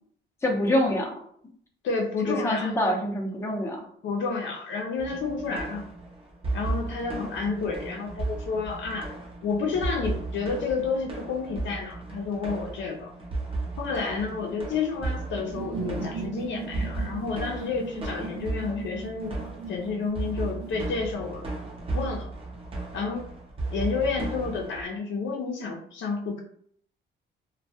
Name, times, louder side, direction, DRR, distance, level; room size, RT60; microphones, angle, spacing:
voice 1, 0.4-1.1 2.2-3.8, left 1 dB, 15° left, -1 dB, 0.6 m, -25 dB
voice 2, 1.8-2.7 4.0-5.9 6.5-9.1 9.4-13.1 13.8-19.4 19.7-21.5 21.9-22.3 22.9-23.3 23.7-26.4, left 4 dB, 70° left, 1 dB, 0.5 m, -30 dB
sound 1, 5.0-24.8, right 2 dB, 30° right, 0.6 m, -35 dB
sound 2, 15.4-20.9, right 4 dB, 85° right, 0.9 m, -38 dB
2.2 x 2.1 x 2.7 m, 0.64 s
cardioid pair, 90°, 20 cm